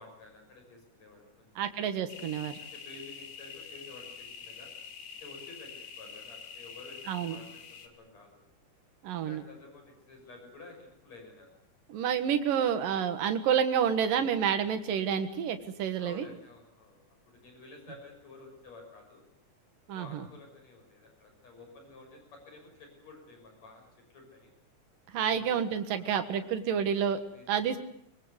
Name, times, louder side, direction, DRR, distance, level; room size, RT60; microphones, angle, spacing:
voice 1, 0.0-1.5 2.3-4.7 5.2-8.4 9.2-11.5 16.0-17.0 17.2-19.2 19.9-24.5 25.1-25.6 26.0-26.3 27.3-27.6, left 3 dB, 55° left, 3 dB, 7.5 m, -52 dB
voice 2, 1.6-2.6 7.1-7.4 9.0-9.4 11.9-16.2 19.9-20.2 25.1-27.2 27.5-27.8, right 8 dB, 85° right, 8 dB, 3.3 m, -29 dB
sound 1, 2.1-7.9, left 6 dB, 75° left, 3.7 m, -46 dB
24.0 x 22.5 x 8.1 m, 0.73 s
omnidirectional pair, 3.8 m